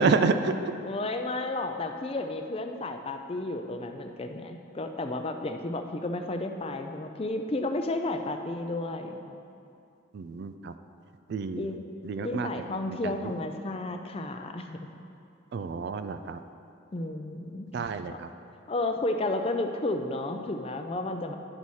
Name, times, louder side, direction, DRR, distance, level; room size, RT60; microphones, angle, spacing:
voice 1, 0.0-0.7 10.1-10.7 11.3-11.7 12.0-12.6 13.0-13.2 15.5-16.4 17.7-18.3, right 4 dB, 55° right, 9 dB, 0.3 m, -28 dB
voice 2, 0.8-9.4 11.6-11.8 12.2-14.8 16.9-17.7 18.7-21.3, left 2 dB, 30° left, 6 dB, 0.4 m, -32 dB
10.5 x 4.2 x 6.3 m, 2.6 s
head